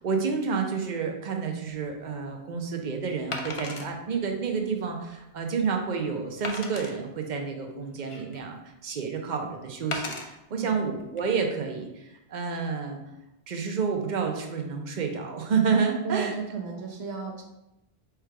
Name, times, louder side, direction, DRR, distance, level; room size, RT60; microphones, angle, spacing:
voice 1, 0.0-13.0 13.5-16.4, right 5 dB, 50° right, 3 dB, 0.7 m, -29 dB
Wood, 1.7-1.9 3.3-3.9 4.5-4.6 5.1-5.2 6.4-6.9 7.7-8.5 9.9-10.3 11.0-11.2, left 3 dB, 45° left, 0.4 m, -35 dB
voice 2, 16.0-17.4, right 5 dB, 70° right, 1 dB, 1.0 m, -34 dB
4.6 x 2.3 x 4.6 m, 0.92 s
omnidirectional pair, 1.1 m